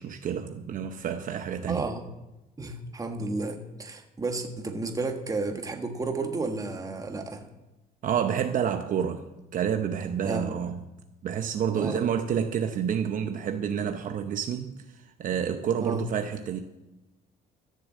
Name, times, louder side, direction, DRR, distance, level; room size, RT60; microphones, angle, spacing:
voice 1, 0.0-1.9 8.0-9.3 9.5-10.8 11.2-16.6, right 8 dB, 50° right, 0.8 m, -29 dB
voice 2, 1.7-2.0 2.6-7.4 10.2-10.5 11.7-12.0 15.8-16.0, right 3 dB, 20° right, 1.6 m, -32 dB
14.0 x 6.8 x 7.5 m
cardioid pair, 110°, 17 cm